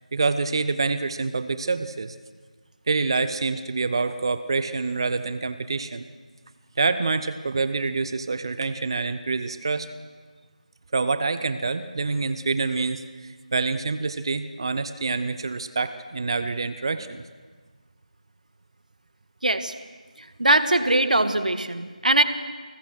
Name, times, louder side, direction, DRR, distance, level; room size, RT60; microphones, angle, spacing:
voice 1, 0.1-2.1 2.9-6.0 6.8-9.9 10.9-13.0 13.5-17.2, right 4 dB, 35° right, 12 dB, 0.8 m, -26 dB
voice 2, 19.4-19.7 20.2-22.2, right 1 dB, 70° right, 10 dB, 1.6 m, -21 dB
29.5 x 20.0 x 6.4 m, 1.5 s
figure-of-eight pair, 165°, 4 cm